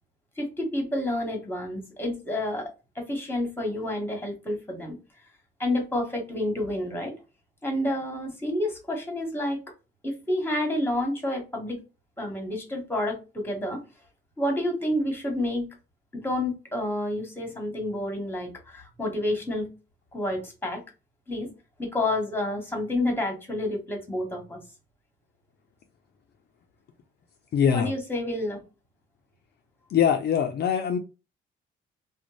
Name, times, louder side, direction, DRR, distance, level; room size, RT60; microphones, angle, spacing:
voice 1, 0.4-5.0 5.6-7.1 7.6-9.6 10.0-11.8 12.2-13.8 14.4-15.7 16.1-19.7 20.1-20.8 21.3-21.5 21.8-24.6 27.7-28.6, left 1 dB, 10° left, 1.2 m, -29 dB
voice 2, 27.5-27.9 29.9-31.0, left 8 dB, 55° left, 0.4 m, -22 dB
2.5 x 2.0 x 3.1 m
cardioid pair, 90°, 20 cm